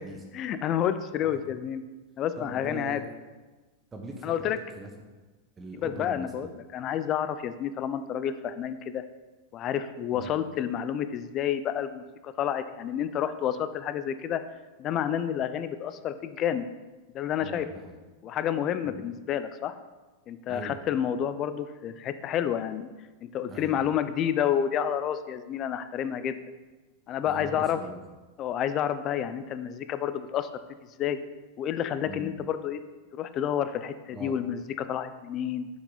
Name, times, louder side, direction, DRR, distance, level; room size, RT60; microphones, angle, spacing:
voice 1, 0.3-1.8 2.2-3.0 4.2-4.6 5.7-9.0 9.5-14.4 14.8-16.7 17.1-17.7 18.2-19.7 20.3-22.9 23.2-26.4 27.1-27.8 28.4-30.5 31.0-31.2 31.6-32.8 33.1-35.7, left 9 dB, 40° left, 11 dB, 0.5 m, -29 dB
voice 2, 1.2-1.6 2.4-3.1 3.9-4.9 5.6-6.6 10.1-10.4 17.4-18.0 18.8-19.0 20.5-20.8 23.5-24.0 27.3-28.0 32.1-32.3 34.1-34.4, right 2 dB, 20° right, 2 dB, 1.0 m, -41 dB
6.4 x 6.0 x 3.9 m, 1.2 s
hypercardioid pair, 105°, 0 cm